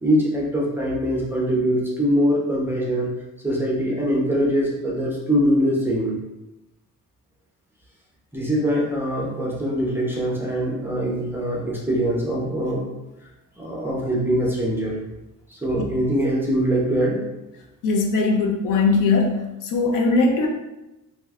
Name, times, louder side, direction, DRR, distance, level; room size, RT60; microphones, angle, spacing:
voice 1, 0.0-3.1 3.4-6.2 8.3-12.8 13.6-15.0 15.5-17.2, equal, 5° right, -4 dB, 0.4 m, -23 dB
voice 2, 17.8-20.5, left 3 dB, 75° left, 2 dB, 0.6 m, -20 dB
2.6 x 2.2 x 3.4 m, 0.98 s
cardioid pair, 160°, 32 cm